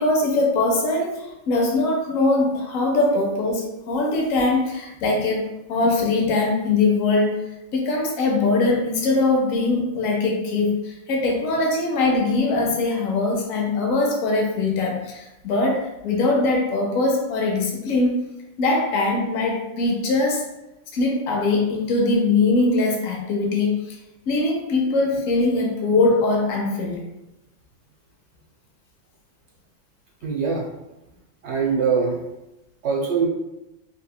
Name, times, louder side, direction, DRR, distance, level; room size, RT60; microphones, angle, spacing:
voice 1, 0.0-18.2 18.6-20.5 20.9-24.0 24.3-27.0, left 2 dB, 80° left, 0 dB, 1.0 m, -22 dB
voice 2, 30.2-30.7 31.4-32.2 32.8-33.3, right 5 dB, 65° right, -2 dB, 0.8 m, -22 dB
3.0 x 2.8 x 2.2 m, 0.93 s
omnidirectional pair, 1.4 m